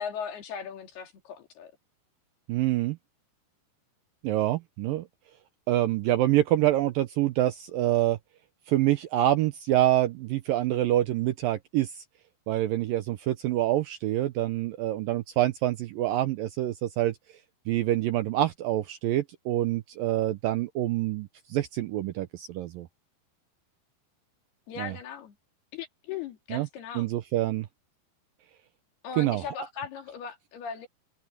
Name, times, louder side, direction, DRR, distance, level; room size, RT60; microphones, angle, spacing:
voice 1, 0.0-1.7 24.7-25.4 25.7-27.1 29.0-30.9, left 7 dB, 70° left, 4.6 m, -38 dB
voice 2, 2.5-3.0 4.2-5.1 5.7-8.2 8.7-12.0 12.5-17.2 17.7-22.9 24.8-24.9 26.5-26.7 27.0-27.7 29.2-29.4, right 14 dB, 80° right, 2.1 m, -26 dB
omnidirectional pair, 4.8 m